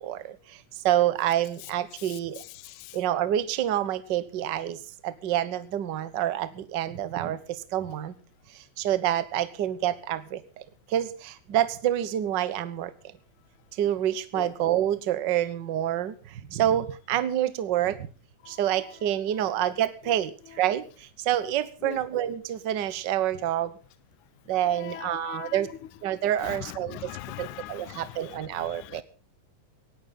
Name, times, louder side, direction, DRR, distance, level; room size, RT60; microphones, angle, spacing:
voice 1, 0.0-2.4 2.9-8.1 8.5-12.9 13.7-18.1 18.5-23.7 24.5-25.7 26.0-27.1 27.4-29.0, right 11 dB, 55° right, 1.3 m, -28 dB
voice 2, 2.0-3.0 14.3-14.5 18.4-18.8 19.4-19.6 21.8-22.0 24.6-25.7 26.4-29.0, left 14 dB, 80° left, 2.2 m, -41 dB
18.5 x 15.5 x 3.9 m
omnidirectional pair, 3.5 m